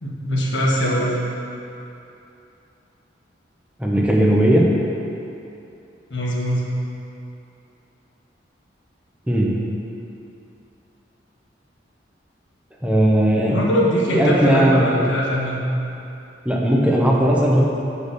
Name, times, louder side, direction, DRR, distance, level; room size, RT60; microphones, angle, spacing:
voice 1, 0.0-1.1 6.1-6.7 13.5-15.6, equal, 80° left, -4 dB, 1.5 m, -21 dB
voice 2, 3.8-4.7 9.3-9.5 12.8-13.6 14.1-14.8 16.4-17.6, right 1 dB, 5° right, -3 dB, 0.7 m, -17 dB
6.1 x 5.2 x 6.6 m, 2.8 s
head